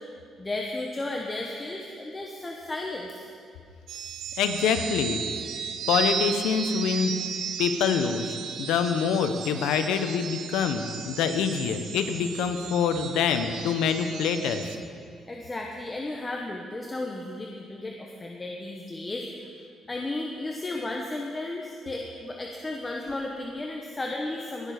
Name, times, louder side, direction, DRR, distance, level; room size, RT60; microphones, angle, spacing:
voice 1, 0.4-3.3 15.3-19.3 19.9-24.7, left 2 dB, 25° left, 0 dB, 1.0 m, -34 dB
sound 1, 3.9-14.8, right 6 dB, 75° right, 0.8 m, -35 dB
voice 2, 4.4-5.2 5.9-7.2 7.6-14.7, left 6 dB, 90° left, 8 dB, 0.8 m, -26 dB
18.0 x 6.6 x 5.0 m, 2.3 s
cardioid pair, 90°, 0 cm